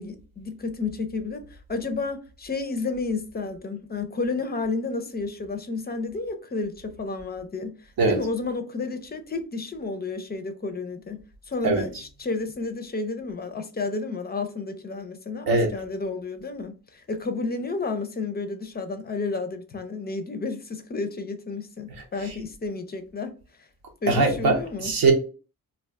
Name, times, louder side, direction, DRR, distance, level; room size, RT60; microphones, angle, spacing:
voice 1, 0.0-7.8 8.1-11.2 11.5-23.3 24.0-24.9, left 3 dB, 30° left, 0.4 m, -31 dB
voice 2, 24.1-25.1, right 3 dB, 80° right, 0.9 m, -21 dB
2.3 x 2.3 x 3.4 m
cardioid pair, 110°, 35 cm